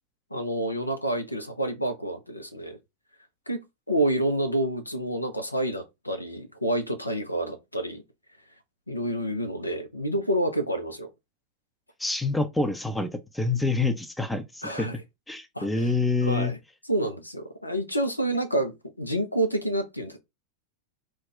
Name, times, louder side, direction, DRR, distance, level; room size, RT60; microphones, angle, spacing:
voice 1, 0.3-2.8 3.5-8.0 8.9-11.1 14.6-15.0 15.5-15.9 16.2-16.6 16.9-20.2, right 1 dB, 85° left, 0.5 m, -28 dB
voice 2, 12.0-14.9 15.3-16.5, left 3 dB, 5° left, 0.5 m, -27 dB
2.3 x 2.2 x 3.7 m
figure-of-eight pair, 90°, 0 cm